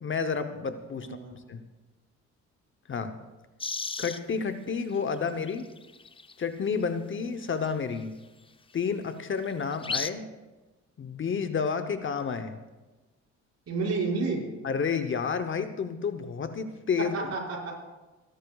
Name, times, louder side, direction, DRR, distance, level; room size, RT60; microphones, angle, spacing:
voice 1, 0.0-1.6 2.9-3.2 4.0-5.7 6.4-8.2 8.7-10.3 11.0-12.6 14.6-17.3, left 5 dB, 40° left, 9 dB, 0.8 m, -30 dB
voice 2, 1.0-1.3 13.7-14.4 17.1-17.7, right 4 dB, 55° right, -3 dB, 5.7 m, -30 dB
sound 1, 3.6-4.2 5.1-5.2 5.4-6.3 7.6-7.7 9.6-10.1, left 4 dB, 20° left, 0.5 m, -33 dB
29.5 x 11.5 x 2.4 m, 1.2 s
cardioid pair, 90°, 30 cm